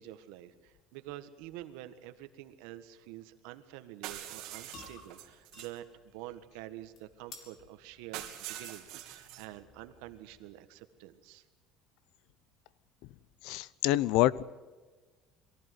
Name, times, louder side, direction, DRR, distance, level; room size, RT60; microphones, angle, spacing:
voice 1, 0.0-5.8 6.1-11.4, right 13 dB, 85° right, 9 dB, 1.6 m, -47 dB
sound 1, 4.0-5.8 8.1-9.5, right 13 dB, 60° right, 3.0 m, -44 dB
sound 2, 4.3-10.7, left 4 dB, 40° left, 3.0 m, -56 dB
voice 2, 13.4-14.4, left 15 dB, 65° left, 21 dB, 0.6 m, -26 dB
23.0 x 15.0 x 9.4 m, 1.3 s
cardioid pair, 175°, 0 cm